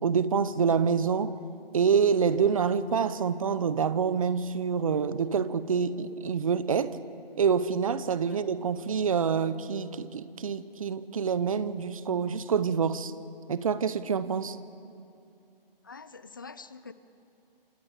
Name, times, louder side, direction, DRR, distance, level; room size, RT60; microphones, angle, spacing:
voice 1, 0.0-1.4 1.7-7.0 7.4-13.1 13.5-14.6, right 6 dB, 35° right, 0.8 m, -26 dB
voice 2, 15.8-16.9, left 4 dB, 20° left, 0.5 m, -45 dB
27.0 x 26.5 x 5.0 m
figure-of-eight pair, 150°, 30 cm